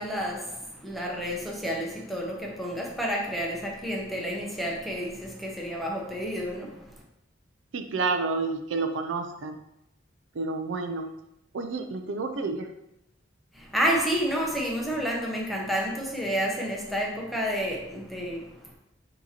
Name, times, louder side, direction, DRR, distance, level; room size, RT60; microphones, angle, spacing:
voice 1, 0.0-7.0 13.5-18.7, equal, ahead, -2 dB, 0.7 m, -30 dB
voice 2, 7.7-9.6 10.4-11.1 11.5-12.7, right 3 dB, 85° right, 7 dB, 0.4 m, -29 dB
6.1 x 2.9 x 2.8 m, 0.86 s
head